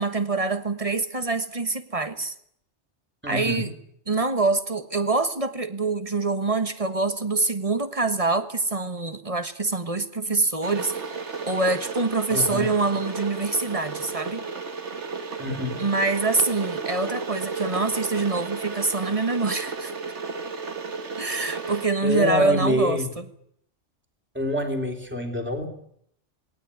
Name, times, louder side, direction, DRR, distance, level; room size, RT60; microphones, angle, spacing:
voice 1, 0.0-2.3 3.3-3.7 4.1-10.9 11.4-14.5 15.8-19.9 21.2-23.2, right 3 dB, 30° right, 10 dB, 1.4 m, -25 dB
voice 2, 3.2-3.7 12.3-12.7 15.4-15.8 22.0-23.1 24.3-25.7, left 1 dB, 10° right, 4 dB, 3.1 m, -26 dB
Water / Boiling, 10.6-21.9, right 4 dB, 75° right, 2.0 m, -33 dB
19.0 x 18.0 x 9.8 m, 0.70 s
omnidirectional pair, 1.2 m